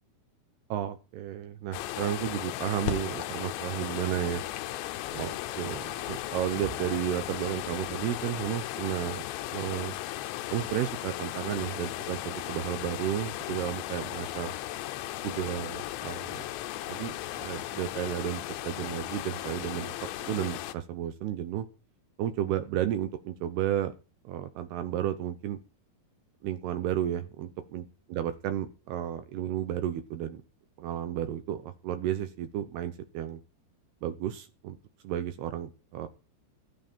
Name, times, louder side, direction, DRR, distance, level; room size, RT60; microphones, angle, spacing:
voice 1, 0.7-4.4 5.1-9.2 9.5-9.9 10.5-14.5 15.2-16.4 16.9-19.9 20.2-21.7 22.2-24.0 24.2-25.6 26.4-27.8 28.1-30.4 30.8-33.4 34.0-34.8 35.0-36.1, right 11 dB, 75° right, 10 dB, 2.7 m, -32 dB
sound 1, 1.7-20.7, left 15 dB, 80° left, 3.0 m, -36 dB
sound 2, 2.8-8.5, left 6 dB, 60° left, 2.0 m, -43 dB
15.0 x 12.5 x 4.5 m, 0.33 s
omnidirectional pair, 5.3 m